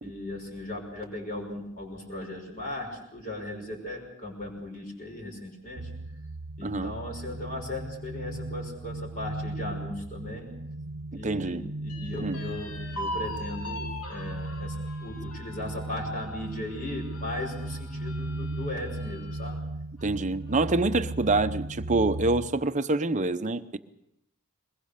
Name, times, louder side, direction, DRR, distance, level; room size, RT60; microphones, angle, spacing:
voice 1, 0.0-5.9 6.6-10.5 11.1-19.6, left 1 dB, 40° left, 5.8 m, -37 dB
sound 1, 5.8-22.5, right 2 dB, 70° right, 1.0 m, -37 dB
voice 2, 6.6-6.9 11.2-11.6 12.2-12.4 20.0-23.8, right 2 dB, 35° right, 0.8 m, -26 dB
sound 2, 11.9-19.5 20.0-20.1 20.5-21.2, left 1 dB, 80° left, 2.5 m, -41 dB
21.5 x 21.5 x 6.7 m
head